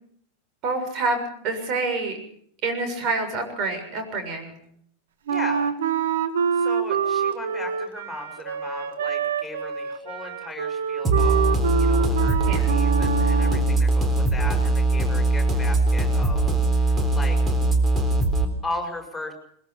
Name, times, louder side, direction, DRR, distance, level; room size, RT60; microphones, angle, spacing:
voice 1, 0.6-2.1 2.6-4.6 12.4-12.8, right 3 dB, 40° right, 6 dB, 6.8 m, -27 dB
voice 2, 5.3-5.7 6.5-11.4 11.7-17.5 18.6-19.3, left 2 dB, 5° left, 3 dB, 6.5 m, -37 dB
Wind instrument woodwind instrument, 5.3-13.7, right 7 dB, 65° right, 1.8 m, -26 dB
sound 1, 11.0-18.4, right 2 dB, 20° right, 3.8 m, -21 dB
22.0 x 21.5 x 5.9 m, 0.64 s
figure-of-eight pair, 90°, 0 cm